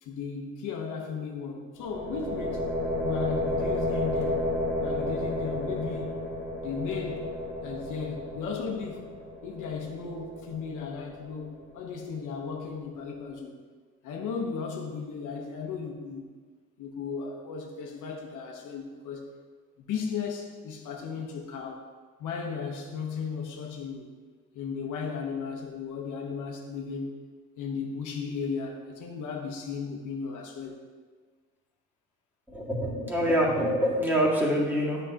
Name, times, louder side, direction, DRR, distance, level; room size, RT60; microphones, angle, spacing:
voice 1, 0.0-2.7 3.0-4.5 4.8-6.2 6.6-7.3 7.6-9.1 9.4-13.5 14.0-16.3 16.8-19.3 19.8-21.9 22.2-24.1 24.5-27.1 27.6-30.8, left 5 dB, 85° left, 1 dB, 1.0 m, -35 dB
sound 1, 1.8-11.7, left 1 dB, 20° right, 2.3 m, -32 dB
voice 2, 32.5-35.0, equal, 5° right, -5 dB, 2.0 m, -25 dB
8.9 x 6.5 x 2.9 m, 1.5 s
cardioid pair, 90°, 30 cm